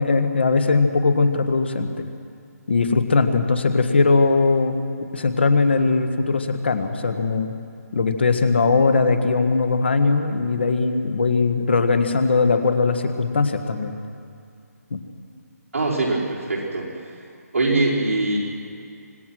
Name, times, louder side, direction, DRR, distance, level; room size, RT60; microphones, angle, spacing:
voice 1, 0.0-2.0 2.7-4.8 5.1-7.5 7.9-14.0 14.9-15.0, left 4 dB, 40° left, 8 dB, 1.6 m, -20 dB
voice 2, 15.7-17.2 17.5-18.4, right 2 dB, 55° right, -5 dB, 5.4 m, -23 dB
26.0 x 19.5 x 6.2 m, 2.4 s
hypercardioid pair, 180°, 9 cm